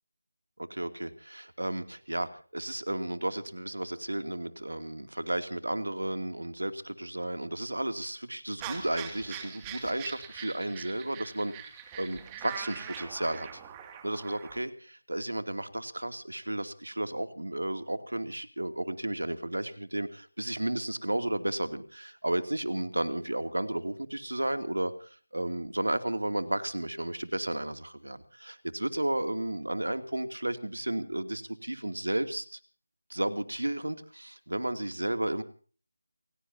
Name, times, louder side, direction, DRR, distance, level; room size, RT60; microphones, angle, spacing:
voice 1, 0.7-11.5 11.9-13.6 14.0-32.6 33.1-35.4, right 1 dB, 85° right, 9 dB, 2.7 m, -33 dB
sound 1, 8.6-14.6, right 8 dB, 15° right, 2.5 m, -43 dB
29.5 x 16.5 x 2.9 m, 0.41 s
figure-of-eight pair, 165°, 0 cm